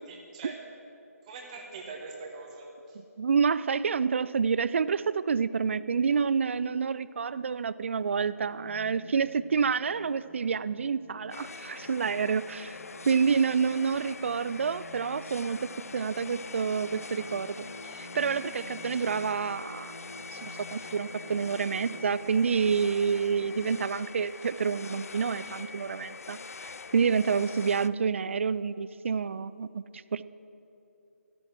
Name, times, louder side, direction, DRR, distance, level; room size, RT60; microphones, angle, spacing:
voice 1, 0.1-0.6 1.3-3.0, right 4 dB, 25° right, 0 dB, 1.5 m, -43 dB
voice 2, 3.2-12.8 13.1-17.6 17.9-19.9 20.3-30.2, right 6 dB, 50° right, 17 dB, 0.4 m, -28 dB
sound 1, 8.2-23.7, equal, 85° right, 2.1 m, -50 dB
sound 2, 11.3-27.9, left 4 dB, 65° left, 0.4 m, -44 dB
12.5 x 12.0 x 6.2 m, 2.8 s
figure-of-eight pair, 150°, 9 cm